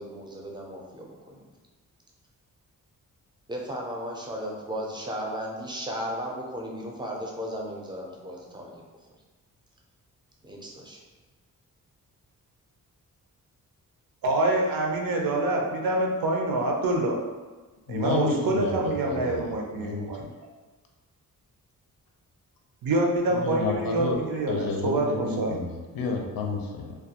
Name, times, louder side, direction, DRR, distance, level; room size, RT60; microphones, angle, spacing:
voice 1, 0.0-1.5 3.5-9.1 10.4-11.0, equal, 15° right, -1 dB, 0.4 m, -35 dB
voice 2, 14.2-17.2 17.9-20.2 22.8-25.6, right 2 dB, 85° right, 0 dB, 0.5 m, -26 dB
voice 3, 17.9-19.5 19.7-20.3 23.4-24.2 24.5-27.0, left 4 dB, 90° left, 1 dB, 0.5 m, -31 dB
2.3 x 2.2 x 2.7 m, 1.3 s
wide cardioid pair, 115°, 34 cm